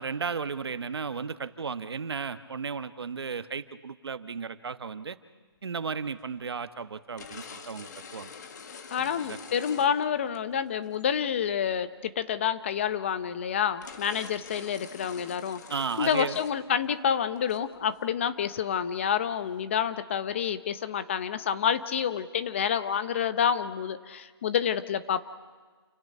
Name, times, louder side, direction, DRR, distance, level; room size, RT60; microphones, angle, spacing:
voice 1, 0.0-5.2 5.6-8.3 9.0-9.4 15.7-16.4, right 5 dB, 75° right, 11 dB, 1.2 m, -34 dB
sound 1, 6.1-6.2 7.2-10.4 10.9-11.0 12.9-13.0 13.3-13.4 13.8-16.6 16.8-17.0 17.4-18.0, left 5 dB, 45° left, 2.0 m, -45 dB
voice 2, 8.9-15.6 16.0-25.3, left 8 dB, 30° left, 13 dB, 0.8 m, -28 dB
29.5 x 17.0 x 5.5 m, 1.4 s
hypercardioid pair, 165°, 13 cm